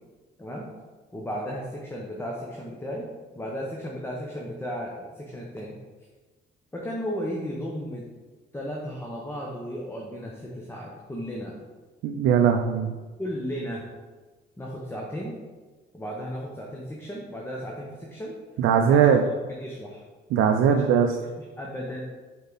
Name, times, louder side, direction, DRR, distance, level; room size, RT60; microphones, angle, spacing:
voice 1, 1.1-3.1 3.3-5.8 6.7-8.0 8.5-11.6 13.2-13.9 14.6-15.3 15.9-18.3 18.9-19.1 19.5-20.0 20.7-20.9 21.2-22.1, equal, 10° left, -2 dB, 0.9 m, -35 dB
voice 2, 12.0-13.0 18.6-19.3 20.3-21.1, right 7 dB, 90° right, 4 dB, 0.4 m, -20 dB
5.4 x 4.6 x 4.0 m, 1.3 s
cardioid pair, 90°, 20 cm